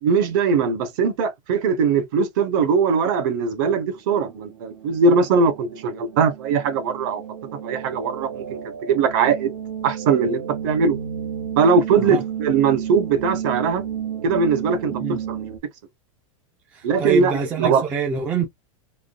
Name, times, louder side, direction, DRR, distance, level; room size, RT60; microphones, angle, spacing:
voice 1, 0.0-7.2 7.6-9.5 9.8-11.0 11.6-13.8 14.2-14.9 15.3-15.5 16.8-17.3 17.6-17.8, right 5 dB, 40° right, 0.9 m, -20 dB
sound 1, 3.7-15.6, right 8 dB, 85° right, 1.0 m, -32 dB
voice 2, 16.7-18.5, right 6 dB, 10° right, 0.3 m, -26 dB
3.5 x 2.2 x 2.4 m
supercardioid pair, 175°, 17 cm